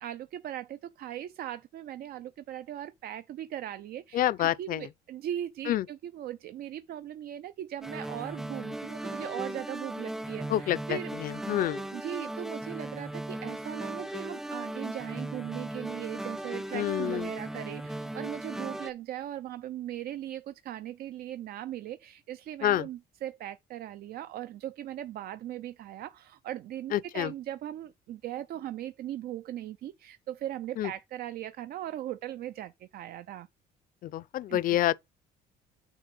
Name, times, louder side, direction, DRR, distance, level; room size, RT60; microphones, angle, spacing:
voice 1, 0.0-11.1 11.9-33.5 34.5-34.8, right 12 dB, 65° right, 0.6 m, -39 dB
voice 2, 4.1-4.9 5.7-5.9 10.5-11.9 16.7-17.3 22.6-22.9 26.9-27.3 30.8-30.9 34.0-34.9, left 13 dB, 55° left, 0.5 m, -28 dB
sound 1, 7.8-18.9, right 1 dB, 5° right, 0.3 m, -37 dB
9.1 x 3.3 x 5.4 m
cardioid pair, 110°, 17 cm